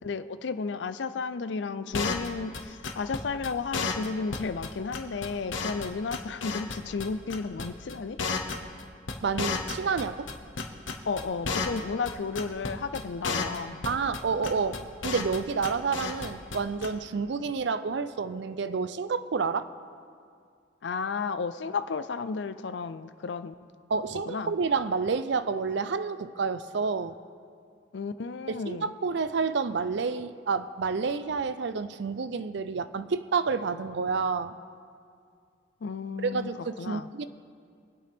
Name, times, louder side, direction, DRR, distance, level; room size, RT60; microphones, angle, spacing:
voice 1, 0.0-8.2 11.0-13.8 20.8-23.5 24.3-24.5 27.9-28.9 35.8-37.1, left 4 dB, 65° left, 12 dB, 0.5 m, -33 dB
sound 1, 1.9-2.3 2.5-2.6 2.8-3.2 3.4-3.5 3.7-4.1 4.3-4.4 4.6-4.7 4.9-5.9 6.1-7.0 7.3-7.6 7.9-10.0 10.3-11.8 12.0-12.1 12.3-12.7 12.9-13.0 13.2-13.6 13.8-14.2 14.4-15.4 15.6-16.3 16.5-16.6 16.8-16.9, left 4 dB, 85° left, 1.0 m, -31 dB
voice 2, 9.2-10.3 13.9-19.7 23.9-27.2 28.5-34.6 36.2-37.3, right 5 dB, 65° right, 13 dB, 0.5 m, -29 dB
24.5 x 8.5 x 3.5 m, 2.2 s
head